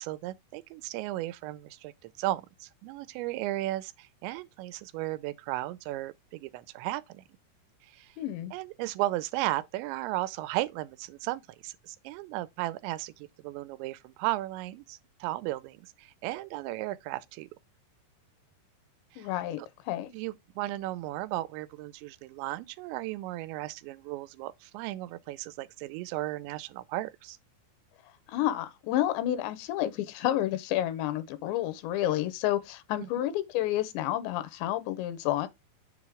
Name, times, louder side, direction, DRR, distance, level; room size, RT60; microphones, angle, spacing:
voice 1, 0.0-7.2 7.8-8.1 8.5-17.5 19.1-19.3 20.1-27.4 33.0-33.2, right 16 dB, 85° right, 2.9 m, -35 dB
voice 2, 8.2-8.5 19.2-19.6 19.9-20.1 28.3-35.5, left 13 dB, 85° left, 3.0 m, -30 dB
7.3 x 3.1 x 4.8 m
omnidirectional pair, 5.1 m